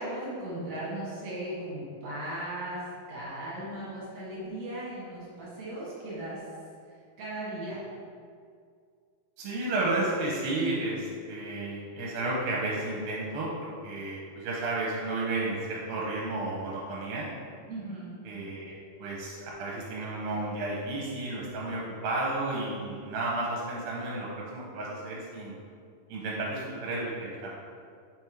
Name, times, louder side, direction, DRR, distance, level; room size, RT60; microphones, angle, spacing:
voice 1, 0.0-6.5 6.8-7.8 17.7-18.2, right 1 dB, 55° right, -7 dB, 2.4 m, -37 dB
voice 2, 9.4-17.3 18.2-25.6 26.1-27.5, right 2 dB, 75° right, -4 dB, 2.5 m, -32 dB
6.0 x 3.5 x 4.5 m, 2.2 s
omnidirectional pair, 4.4 m